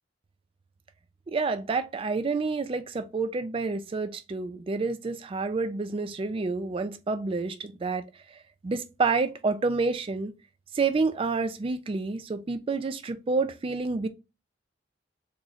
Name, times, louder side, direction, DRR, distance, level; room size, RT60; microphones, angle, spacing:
voice 1, 1.3-8.0 8.6-10.3 10.7-14.1, right 4 dB, 30° right, 0.3 m, -28 dB
3.1 x 2.4 x 3.9 m
head